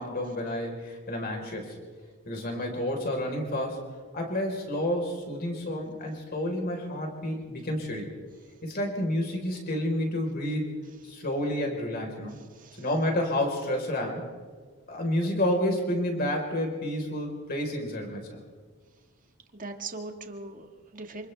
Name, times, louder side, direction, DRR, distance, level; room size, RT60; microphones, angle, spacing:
voice 1, 0.0-1.8 2.2-3.8 4.1-8.1 8.6-10.6 11.0-12.4 12.8-14.2 14.9-18.4, left 1 dB, 45° left, 1 dB, 4.2 m, -30 dB
voice 2, 19.5-21.3, right 3 dB, 40° right, 4 dB, 1.8 m, -40 dB
27.5 x 27.5 x 3.4 m, 1.5 s
head